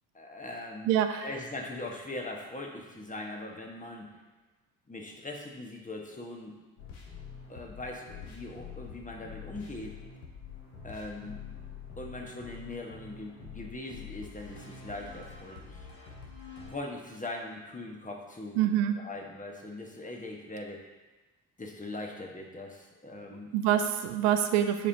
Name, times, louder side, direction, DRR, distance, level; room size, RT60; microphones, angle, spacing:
voice 1, 0.1-0.9 1.2-4.1 4.9-6.5 7.5-10.0 10.8-11.4 12.0-15.9 16.7-18.6 19.0-20.8 21.6-23.5, left 2 dB, 15° left, 0 dB, 1.4 m, -41 dB
voice 2, 0.8-1.3 18.6-19.0 23.5-24.9, right 10 dB, 75° right, 8 dB, 0.5 m, -26 dB
sound 1, 6.8-16.7, left 6 dB, 70° left, 1.3 m, -46 dB
8.5 x 4.9 x 2.8 m, 1.2 s
figure-of-eight pair, 45°, 46 cm